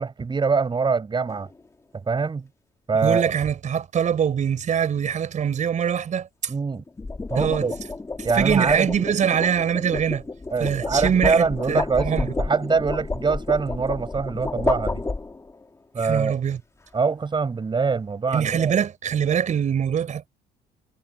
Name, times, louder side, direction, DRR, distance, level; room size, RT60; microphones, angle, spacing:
voice 1, 0.0-1.5 1.9-2.5 2.9-3.3 6.5-6.8 7.3-7.8 8.2-8.9 10.5-15.1 15.9-16.4 16.9-18.7, right 5 dB, 25° right, 7.4 m, -24 dB
sound 1, 1.3-1.6 6.7-15.6, left 3 dB, 15° left, 2.2 m, -30 dB
voice 2, 3.0-6.5 7.4-7.7 8.3-10.2 10.6-12.3 16.0-16.6 18.3-20.3, right 8 dB, 45° right, 5.5 m, -23 dB
cardioid pair, 110°, 17 cm